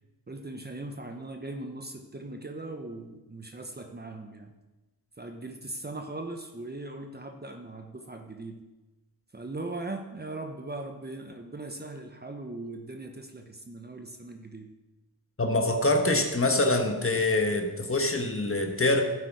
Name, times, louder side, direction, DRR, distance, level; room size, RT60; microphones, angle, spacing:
voice 1, 0.3-4.5 5.2-8.6 9.3-14.7, right 2 dB, 25° right, 4 dB, 1.1 m, -39 dB
voice 2, 15.4-19.0, left 2 dB, 35° left, 4 dB, 1.7 m, -25 dB
11.5 x 8.5 x 4.9 m, 1.1 s
cardioid pair, 65°, 38 cm